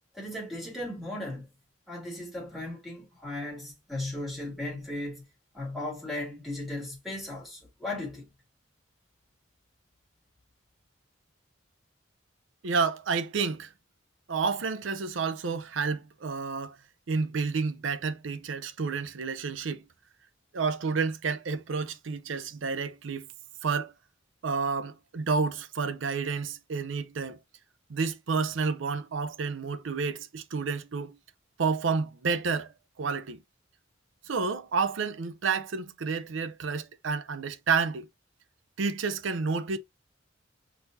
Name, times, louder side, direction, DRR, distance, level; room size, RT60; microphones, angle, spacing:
voice 1, 0.1-1.5 1.9-5.2 5.5-8.3, left 1 dB, ahead, 2.6 m, -36 dB
voice 2, 12.6-13.7 14.3-16.8 17.1-19.8 20.5-23.3 23.6-23.9 24.4-27.4 27.9-31.2 31.6-32.7 33.0-33.4 34.3-38.1 38.8-39.8, right 5 dB, 75° right, 0.6 m, -30 dB
4.1 x 4.0 x 2.6 m
head